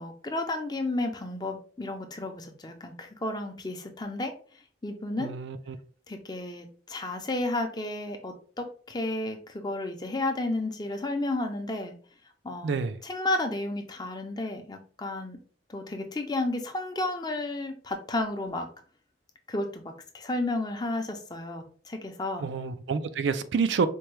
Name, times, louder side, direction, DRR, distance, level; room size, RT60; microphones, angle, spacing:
voice 1, 0.0-4.3 4.8-5.3 6.1-12.0 12.4-12.8 13.0-15.4 15.7-18.7 19.5-22.5, left 2 dB, 25° left, 0.5 m, -32 dB
voice 2, 5.2-5.8 12.6-13.0 22.4-23.9, right 5 dB, 85° right, 0.4 m, -28 dB
4.4 x 2.2 x 3.1 m
head